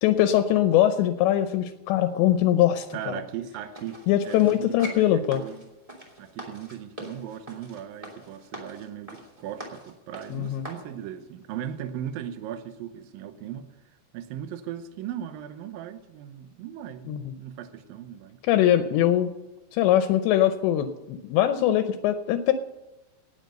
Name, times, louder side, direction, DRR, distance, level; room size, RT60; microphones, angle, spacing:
voice 1, 0.0-3.2 4.1-5.4 10.3-10.7 17.1-17.3 18.5-19.3 19.7-22.5, left 12 dB, 80° left, 9 dB, 2.9 m, -22 dB
voice 2, 2.9-4.0 4.3-5.7 6.2-13.7 14.1-18.4, right 10 dB, 85° right, 8 dB, 2.1 m, -38 dB
sound 1, 3.7-10.9 11.4-11.5, equal, 10° right, 2.1 m, -43 dB
18.5 x 7.9 x 6.6 m, 1.0 s
omnidirectional pair, 5.2 m